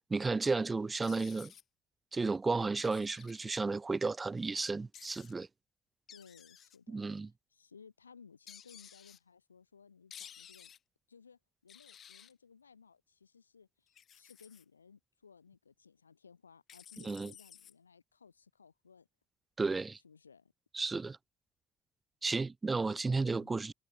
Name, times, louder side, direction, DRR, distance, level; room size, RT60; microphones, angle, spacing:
voice 1, 0.1-1.5 2.1-5.5 6.9-7.3 17.0-17.3 19.6-20.0 20.7-21.2 22.2-23.7, right 3 dB, 25° right, 0.4 m, -33 dB
sound 1, 1.0-1.6 2.8-3.6 4.9-5.3 6.1-6.8 8.5-9.2 10.1-10.8 11.7-12.3 13.9-14.6 16.7-17.7, left 9 dB, 45° left, 0.7 m, -54 dB
voice 2, 6.1-10.7 11.1-19.1 20.0-20.5 23.2-23.5, left 6 dB, 85° left, 0.9 m, -60 dB
figure-of-eight pair, 50°, 0 cm